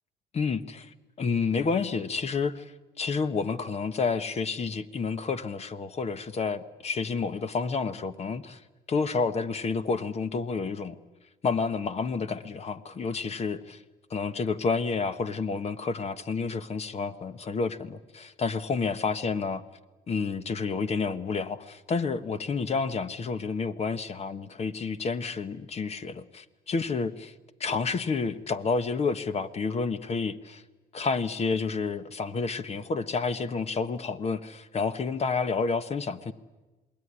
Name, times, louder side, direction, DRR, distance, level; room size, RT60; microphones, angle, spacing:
voice 1, 0.3-0.9 1.2-2.7 3.0-8.6 8.9-11.0 11.4-13.8 14.1-19.6 20.1-27.3 27.6-30.6 30.9-36.3, left 4 dB, 40° left, 12 dB, 1.3 m, -30 dB
28.0 x 21.0 x 9.8 m, 1.2 s
cardioid pair, 110°, 17 cm